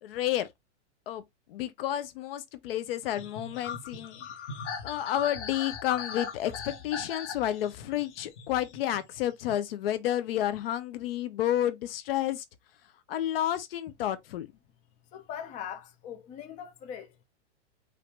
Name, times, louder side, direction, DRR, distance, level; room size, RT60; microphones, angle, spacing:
voice 1, 0.0-0.5 1.1-1.2 1.5-4.2 4.8-12.4 13.1-14.5, left 12 dB, 55° left, 0.7 m, -30 dB
sound 1, 3.1-9.6, left 6 dB, 75° left, 1.4 m, -40 dB
voice 2, 15.1-17.2, left 8 dB, 20° left, 0.7 m, -41 dB
5.1 x 2.7 x 3.0 m
hypercardioid pair, 140°, 35 cm